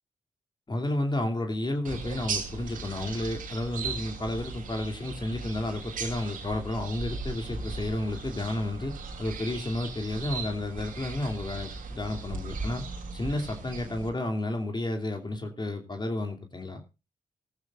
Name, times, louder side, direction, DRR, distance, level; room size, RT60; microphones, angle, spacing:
voice 1, 0.7-12.8 13.1-16.8, left 1 dB, 30° left, 4 dB, 2.8 m, -31 dB
sound 1, 1.9-14.1, right 4 dB, 70° right, 3.0 m, -38 dB
16.0 x 14.5 x 2.5 m, 0.28 s
supercardioid pair, 45°, 14 cm